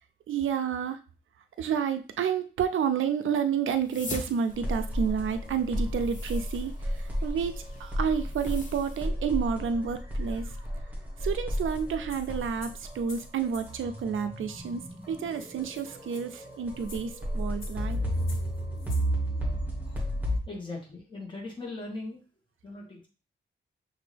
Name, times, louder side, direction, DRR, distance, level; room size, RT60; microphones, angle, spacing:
voice 1, 0.3-1.0 1.6-7.5 7.8-10.5 11.2-14.8 15.1-18.0, right 7 dB, 80° right, 9 dB, 0.5 m, -30 dB
sound 1, 3.7-9.1, left 3 dB, 40° left, 0.8 m, -44 dB
sound 2, 4.5-20.4, equal, 10° right, 1.3 m, -33 dB
sound 3, 11.6-13.7 14.7-14.8 15.0-15.1 15.3-19.1, left 3 dB, 80° left, 1.2 m, -50 dB
voice 2, 20.5-22.2 22.6-23.1, left 2 dB, 25° left, -2 dB, 1.5 m, -39 dB
6.0 x 2.6 x 3.3 m, 0.34 s
wide cardioid pair, 165°, 20 cm